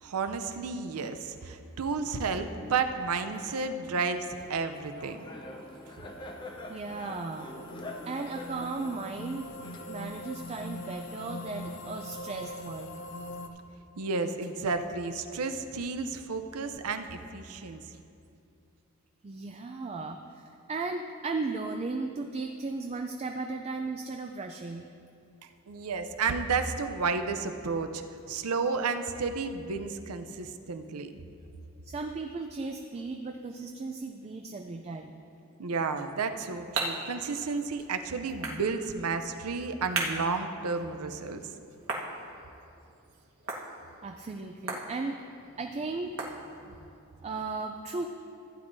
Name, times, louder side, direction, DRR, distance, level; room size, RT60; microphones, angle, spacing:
voice 1, 0.0-5.2 14.0-17.8 25.4-31.2 35.6-41.4, right 4 dB, 90° right, 8 dB, 0.6 m, -32 dB
Laughter, 4.4-10.2, left 1 dB, 20° left, 0.7 m, -45 dB
sound 1, 5.0-13.5, left 1 dB, 55° left, 0.7 m, -43 dB
voice 2, 6.7-7.5 8.1-9.5 9.8-13.0 19.2-20.4 20.7-24.9 31.8-35.2 44.0-45.2 45.6-46.1 46.6-46.7 47.2-48.1, right 3 dB, 30° right, 4 dB, 0.4 m, -36 dB
sound 2, 36.0-46.9, right 3 dB, 65° right, 1.3 m, -40 dB
15.0 x 9.8 x 2.7 m, 2.6 s
head